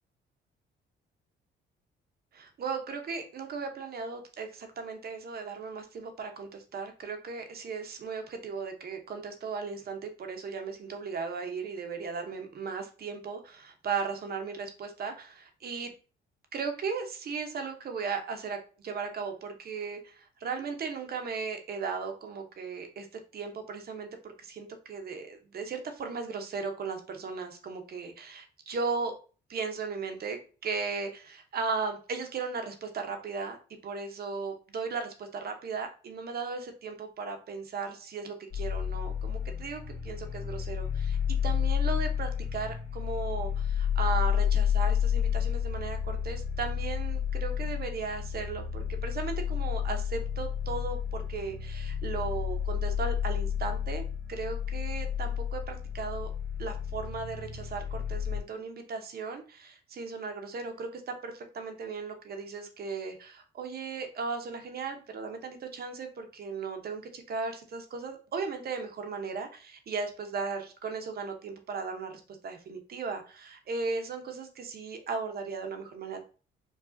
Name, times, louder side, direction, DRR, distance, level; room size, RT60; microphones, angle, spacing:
voice 1, 2.3-15.9 16.5-23.1 23.3-29.1 29.5-33.6 33.8-56.3 56.6-76.2, right 5 dB, 50° right, 6 dB, 0.8 m, -36 dB
sound 1, 38.5-58.4, left 8 dB, 80° left, 1.8 m, -31 dB
4.7 x 2.3 x 2.5 m, 0.37 s
cardioid pair, 90°, 20 cm